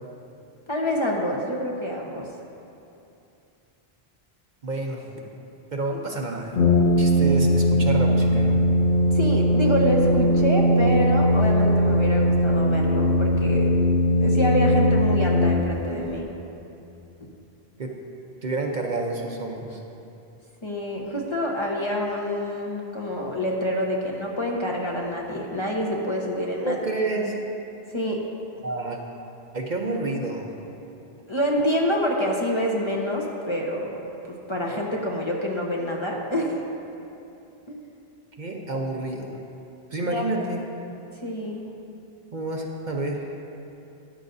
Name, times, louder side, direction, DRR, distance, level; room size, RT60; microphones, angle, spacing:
voice 1, 0.7-2.3 9.1-13.7 14.2-16.3 17.2-17.3 20.6-26.8 27.9-28.2 31.3-36.5 37.7-37.8 40.1-40.2 41.2-41.6, equal, 30° left, -2 dB, 0.9 m, -27 dB
voice 2, 4.6-5.2 5.7-6.5 7.0-8.6 17.8-17.9 18.4-19.8 26.6-27.4 28.6-29.0 29.5-30.5 38.4-39.4 39.9-40.6 42.3-43.3, right 2 dB, 50° right, 1 dB, 0.8 m, -29 dB
Brass instrument, 6.5-16.0, left 1 dB, 55° left, 0.9 m, -20 dB
13.5 x 10.5 x 2.6 m, 2.8 s
omnidirectional pair, 1.1 m